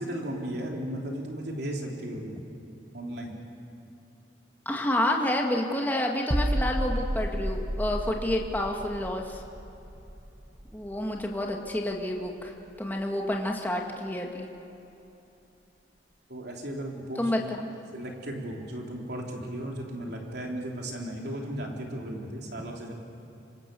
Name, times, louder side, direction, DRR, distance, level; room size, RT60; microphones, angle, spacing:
voice 1, 0.0-2.4 2.9-3.4 16.3-17.3 17.9-22.9, right 1 dB, 65° right, 0 dB, 3.7 m, -35 dB
voice 2, 4.7-9.4 10.7-14.5 17.2-17.7, left 1 dB, 10° left, 1 dB, 1.9 m, -29 dB
sound 1, 6.3-12.0 12.3-12.5, right 1 dB, 15° right, 0.7 m, -32 dB
26.5 x 25.0 x 7.0 m, 2.9 s
head